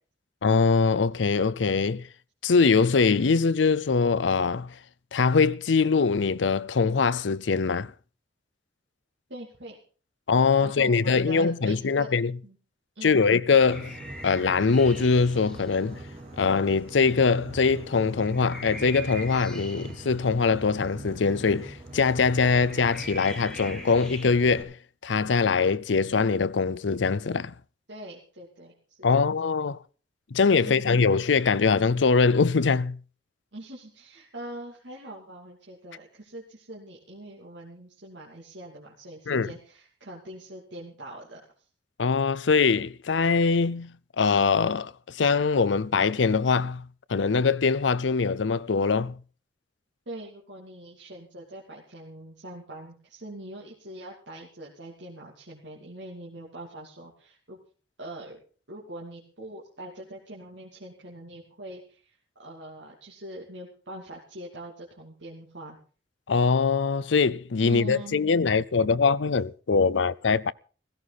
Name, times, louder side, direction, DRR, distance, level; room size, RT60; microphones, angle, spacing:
voice 1, 0.4-2.1 2.4-4.8 5.1-7.9 10.3-12.3 13.0-13.9 14.2-16.0 16.4-24.8 25.0-27.5 29.0-29.8 30.3-33.0 39.3-39.5 42.0-46.8 47.1-49.2 66.3-70.5, left 4 dB, 85° left, 0.6 m, -23 dB
voice 2, 9.3-9.8 10.6-12.1 12.4-12.6 12.9-13.3 27.9-29.3 30.6-31.0 33.5-41.4 50.1-57.6 58.0-58.4 58.7-65.8 67.6-68.2, right 1 dB, 75° right, 2.8 m, -43 dB
Boat Water vehicle, 13.6-24.6, right 1 dB, 35° right, 4.8 m, -42 dB
sound 1, 13.7-24.3, equal, 5° left, 1.9 m, -44 dB
16.0 x 15.5 x 4.1 m
head